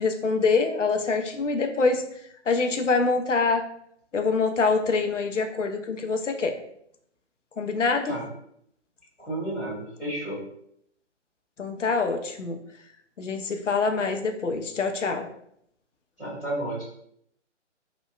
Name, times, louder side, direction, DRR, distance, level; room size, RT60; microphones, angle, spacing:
voice 1, 0.0-2.0 2.5-3.7 4.1-6.5 7.6-8.1 11.6-12.6 13.2-15.3, left 4 dB, 80° left, 5 dB, 0.5 m, -25 dB
voice 2, 9.2-10.4 16.2-16.8, right 1 dB, ahead, -24 dB, 0.4 m, -32 dB
2.8 x 2.1 x 2.3 m, 0.70 s
figure-of-eight pair, 135°, 36 cm